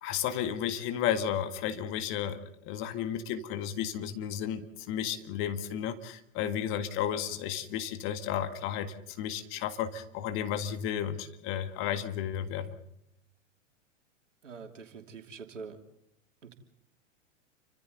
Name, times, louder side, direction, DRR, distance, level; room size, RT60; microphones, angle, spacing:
voice 1, 0.0-12.8, left 9 dB, 35° left, 9 dB, 1.8 m, -33 dB
voice 2, 14.4-15.8 16.4-16.5, right 5 dB, 70° right, 5 dB, 3.1 m, -45 dB
29.5 x 25.5 x 4.0 m, 0.77 s
figure-of-eight pair, 105°, 38 cm